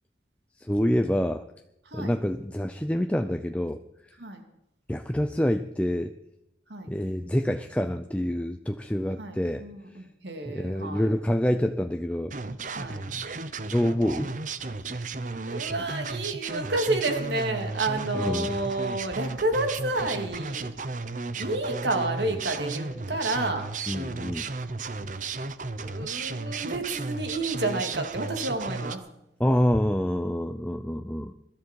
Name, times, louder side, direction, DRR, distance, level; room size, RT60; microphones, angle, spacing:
voice 1, 0.6-1.4 1.9-3.8 4.9-6.1 6.9-9.6 9.9-10.0 10.5-12.3 13.7-14.3 18.1-18.5 23.9-24.5 29.4-31.3, equal, 5° left, 7 dB, 0.5 m, -27 dB
voice 2, 9.2-11.1 12.7-13.1 15.5-20.7 21.3-23.7 25.8-29.0, right 2 dB, 80° right, 4 dB, 2.9 m, -30 dB
sound 1, 12.3-29.0, right 3 dB, 45° right, 0.9 m, -34 dB
22.0 x 13.0 x 4.8 m, 0.82 s
head